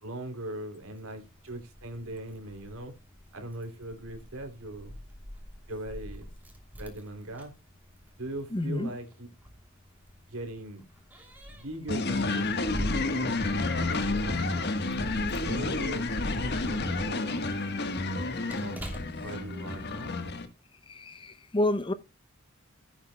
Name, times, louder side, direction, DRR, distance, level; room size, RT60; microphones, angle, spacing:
voice 1, 0.0-2.9 3.3-4.9 5.7-6.3 6.8-7.5 8.2-9.3 10.3-10.8 11.5-15.0 15.4-16.1 16.7-17.4 18.6-18.8 19.2-20.1, right 1 dB, 75° right, 3.1 m, -40 dB
Keys jangling, 0.8-19.9, equal, 10° right, 2.9 m, -43 dB
voice 2, 8.5-8.9 21.0-21.1 21.5-21.9, left 1 dB, 25° left, 0.6 m, -27 dB
sound 1, 11.9-20.5, left 2 dB, 50° left, 1.4 m, -30 dB
15.5 x 8.8 x 2.3 m
head